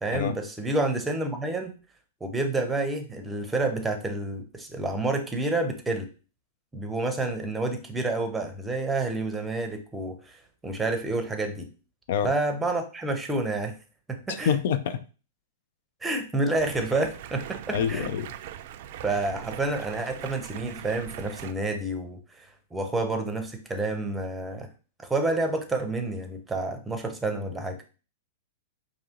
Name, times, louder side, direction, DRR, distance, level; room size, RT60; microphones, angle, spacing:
voice 1, 0.0-1.7 2.2-6.1 6.7-10.2 10.6-11.7 12.2-13.7 14.1-14.6 16.0-18.1 19.0-24.7 25.1-27.8, right 2 dB, 10° right, 5 dB, 0.7 m, -29 dB
voice 2, 14.3-15.0 17.7-18.3, left 8 dB, 65° left, 12 dB, 0.4 m, -26 dB
Stream, 16.5-21.5, right 11 dB, 60° right, 0.3 m, -41 dB
4.8 x 2.7 x 2.9 m, 0.35 s
hypercardioid pair, 125°, 0 cm